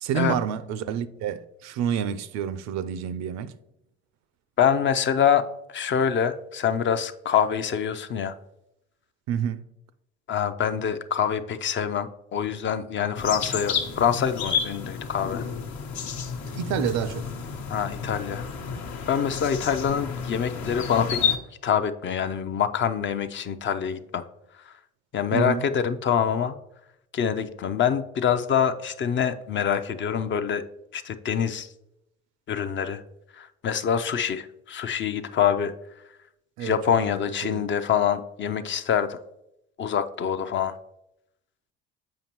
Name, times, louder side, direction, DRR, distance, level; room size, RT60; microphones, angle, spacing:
voice 1, 0.0-3.5 9.3-9.6 16.5-17.2 25.3-25.6 36.6-37.1 37.4-37.7, right 8 dB, 60° right, 0.5 m, -29 dB
voice 2, 4.6-5.5 5.7-8.3 10.3-15.4 17.7-18.5 19.1-21.2 21.6-24.2 25.1-26.6 27.1-30.6 30.9-31.7 32.5-33.0 33.3-35.7 36.6-39.2 39.8-40.8, left 8 dB, 40° left, 0.5 m, -25 dB
sound 1, 13.1-21.4, left 6 dB, 65° left, 0.9 m, -31 dB
7.6 x 5.1 x 3.0 m
hypercardioid pair, 60°, 30 cm